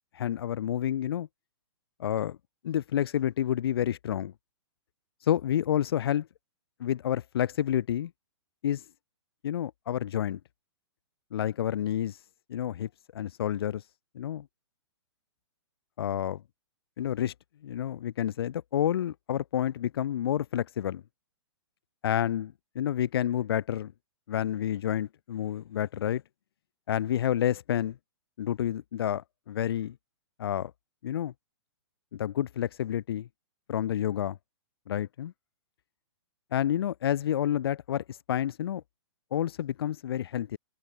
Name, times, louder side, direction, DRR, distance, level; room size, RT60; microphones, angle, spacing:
voice 1, 0.1-1.3 2.0-2.4 2.6-4.3 5.2-6.3 6.8-8.1 8.6-8.8 9.4-10.4 11.3-12.2 12.5-13.8 14.1-14.5 16.0-16.4 17.0-17.3 17.6-21.0 22.0-23.9 24.3-26.2 26.9-28.0 28.4-29.9 30.4-30.7 31.0-31.3 32.1-33.3 33.7-34.4 34.9-35.3 36.5-38.8 39.3-40.6, left 10 dB, 55° left, 2.8 m, -29 dB
hypercardioid pair, 165°, 15 cm